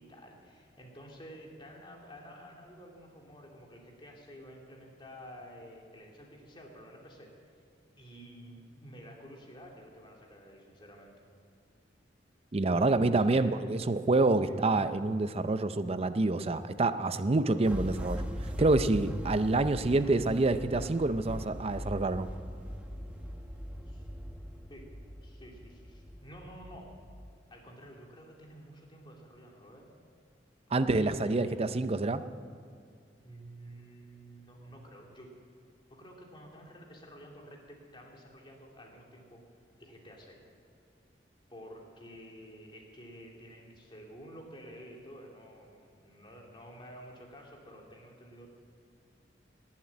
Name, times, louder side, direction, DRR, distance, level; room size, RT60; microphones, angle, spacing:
voice 1, 0.0-7.3 8.0-11.2 12.7-13.6 14.4-14.6 23.9-24.1 24.7-24.9 25.2-26.9 27.5-29.9 30.7-31.4 33.2-35.3 35.9-39.5 39.8-40.4 41.5-48.5, equal, 25° left, -1 dB, 2.5 m, -50 dB
voice 2, 12.5-22.3 30.7-32.2, right 2 dB, 35° right, 12 dB, 0.5 m, -27 dB
sound 1, 17.6-27.3, equal, 5° right, 1.1 m, -41 dB
19.5 x 7.4 x 8.7 m, 2.2 s
head